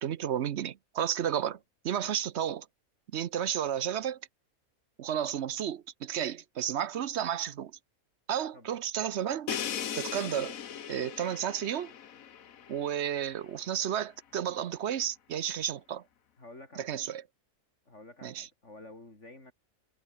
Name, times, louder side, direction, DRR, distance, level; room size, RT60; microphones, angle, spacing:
voice 1, 0.0-1.6 1.8-2.7 3.1-4.2 5.0-7.7 8.3-9.6 9.9-10.6 10.9-11.9 12.7-16.0 16.8-17.2 18.2-18.5, right 9 dB, 60° right, 0.9 m, -32 dB
Crash cymbal, 9.5-13.3, left 9 dB, 75° left, 1.5 m, -38 dB
voice 2, 16.4-17.1 17.9-19.5, left 2 dB, 55° left, 5.7 m, -51 dB
omnidirectional pair, 1.4 m